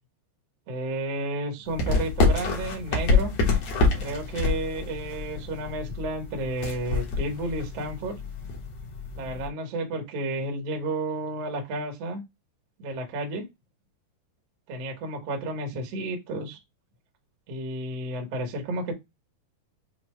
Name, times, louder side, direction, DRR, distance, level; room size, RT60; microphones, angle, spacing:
voice 1, 0.7-3.3 4.0-8.1 9.1-12.2 12.8-13.5 14.7-16.6 17.5-18.9, right 2 dB, 65° right, 2 dB, 1.6 m, -32 dB
sound 1, 1.6-9.5, left 3 dB, 75° left, 1.5 m, -27 dB
6.7 x 2.3 x 3.1 m, 0.21 s
omnidirectional pair, 4.9 m